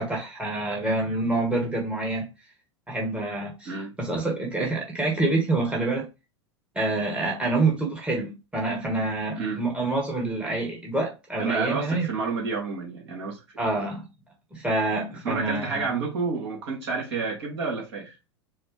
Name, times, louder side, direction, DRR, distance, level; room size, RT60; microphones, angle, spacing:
voice 1, 0.0-2.3 2.9-3.7 4.0-6.1 6.7-12.1 13.6-14.0 14.5-15.9, right 2 dB, 10° right, 1.4 m, -27 dB
voice 2, 11.4-13.4 15.1-18.2, right 4 dB, 60° right, 2.3 m, -29 dB
4.8 x 2.2 x 4.8 m
figure-of-eight pair, 90°, 15 cm